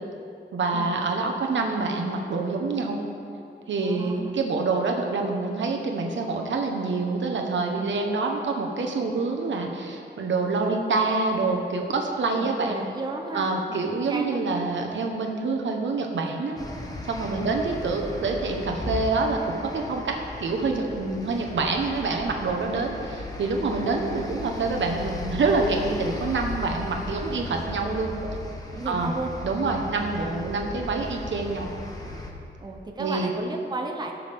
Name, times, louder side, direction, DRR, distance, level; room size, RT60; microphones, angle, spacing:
voice 1, 0.5-3.0 3.7-12.8 13.3-16.6 17.0-28.1 28.9-29.1 29.4-31.7 33.0-33.3, right 3 dB, 85° right, 2 dB, 1.2 m, -26 dB
voice 2, 3.8-4.4 7.8-8.0 10.4-10.7 12.4-14.4 17.3-17.5 28.2-28.4 28.7-29.3 32.6-34.1, right 2 dB, 20° right, 2 dB, 0.7 m, -34 dB
sound 1, 16.6-32.3, left 2 dB, 20° left, 1.0 m, -37 dB
18.0 x 6.3 x 3.6 m, 2.6 s
wide cardioid pair, 165°, 19 cm